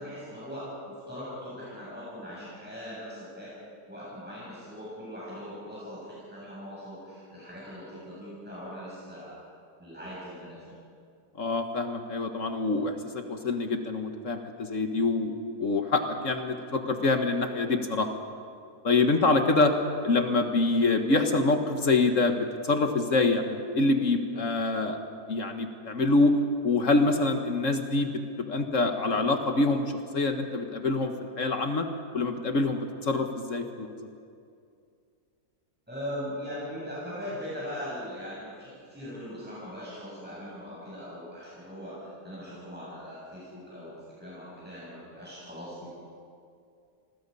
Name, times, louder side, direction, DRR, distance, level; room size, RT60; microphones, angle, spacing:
voice 1, 0.0-3.5 3.9-9.3 9.8-10.6 35.9-45.9, equal, 5° right, -8 dB, 7.9 m, -40 dB
voice 2, 11.4-15.3 15.6-18.1 18.8-19.7 20.0-22.4 22.6-25.0 25.3-26.3 26.6-31.9 32.1-34.1, left 3 dB, 55° left, 6 dB, 1.7 m, -26 dB
28.0 x 21.5 x 5.5 m, 2.4 s
omnidirectional pair, 1.7 m